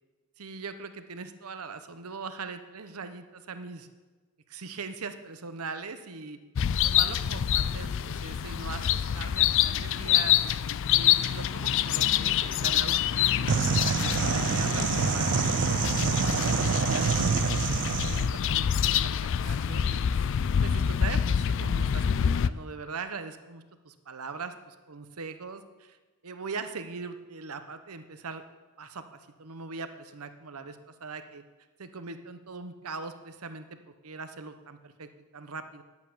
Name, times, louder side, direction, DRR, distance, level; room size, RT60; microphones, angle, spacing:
voice 1, 0.4-3.9 4.5-6.4 6.8-10.4 10.9-15.3 15.9-17.9 18.2-20.0 20.6-26.0 26.2-28.4 28.8-31.4 31.8-33.8 34.0-35.8, right 4 dB, 85° right, 9 dB, 1.0 m, -41 dB
sound 1, 6.6-22.5, left 9 dB, 60° left, 0.4 m, -26 dB
sound 2, 13.5-18.3, right 6 dB, 55° right, 0.4 m, -26 dB
10.5 x 8.3 x 7.3 m, 1.2 s
head